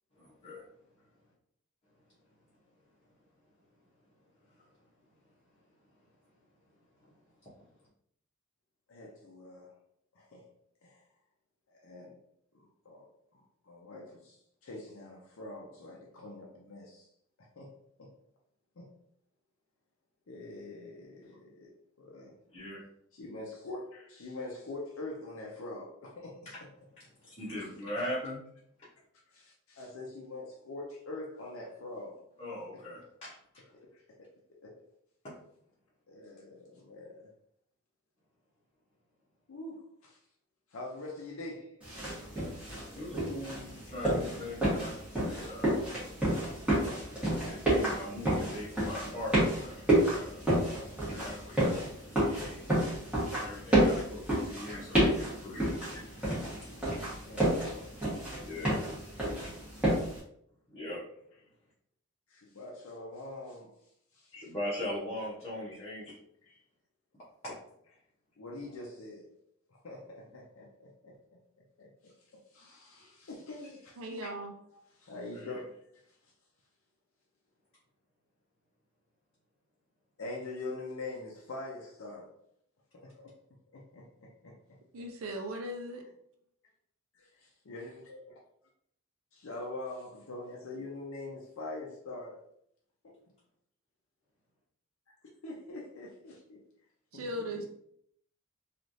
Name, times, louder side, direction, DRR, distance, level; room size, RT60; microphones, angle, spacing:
voice 1, 0.2-0.6 7.0-7.1 7.4-7.5 22.5-22.8 26.4-26.6 27.2-28.4 32.4-33.4 35.2-35.3 42.9-45.9 47.5-52.7 53.4-55.8 58.4-58.8 60.7-61.0 64.3-66.2 67.4-67.5 75.3-75.6, left 1 dB, 30° left, 0.8 m, -41 dB
voice 2, 8.9-9.7 10.1-10.4 10.8-11.0 11.7-12.2 12.5-17.1 17.4-18.1 18.8-18.9 20.3-22.4 23.1-26.5 27.6-27.7 29.3-32.2 32.7-32.8 33.9-34.3 34.6-34.8 36.1-37.3 39.5-40.2 40.7-41.7 49.8-49.9 52.9-53.0 57.2-57.9 62.3-63.7 64.1-64.3 66.4-66.6 68.4-69.3 69.7-71.4 71.8-74.3 74.7-75.6 75.9-76.0 80.2-82.3 82.9-83.1 83.7-84.8 87.7-88.2 89.3-92.4 93.0-93.2 95.4-96.6 97.1-97.6, left 2 dB, 70° left, 0.5 m, -44 dB
sound 1, 41.8-60.2, right 1 dB, 5° right, 1.2 m, -30 dB
voice 3, 74.0-74.5 84.9-86.1 97.1-97.6, equal, 75° right, 0.4 m, -38 dB
3.1 x 2.4 x 2.6 m
head